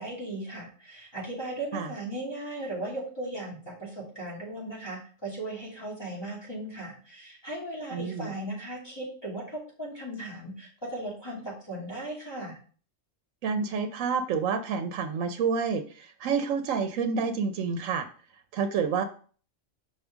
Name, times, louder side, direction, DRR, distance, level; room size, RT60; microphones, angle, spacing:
voice 1, 0.0-12.6, right 1 dB, 20° left, -5 dB, 2.4 m, -37 dB
voice 2, 7.9-8.3 13.4-18.1 18.5-19.0, right 5 dB, 90° right, 7 dB, 1.0 m, -28 dB
6.0 x 5.0 x 3.5 m, 0.42 s
omnidirectional pair, 1.3 m